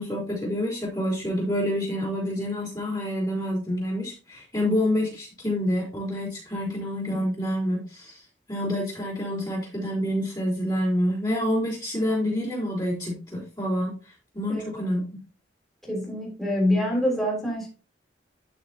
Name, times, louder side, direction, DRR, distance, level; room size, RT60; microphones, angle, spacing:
voice 1, 0.0-8.2 8.5-13.9 14.3-15.2, left 1 dB, 25° left, -7 dB, 3.9 m, -27 dB
voice 2, 15.9-17.7, left 1 dB, ahead, -3 dB, 3.4 m, -25 dB
12.0 x 5.9 x 2.8 m, 0.33 s
head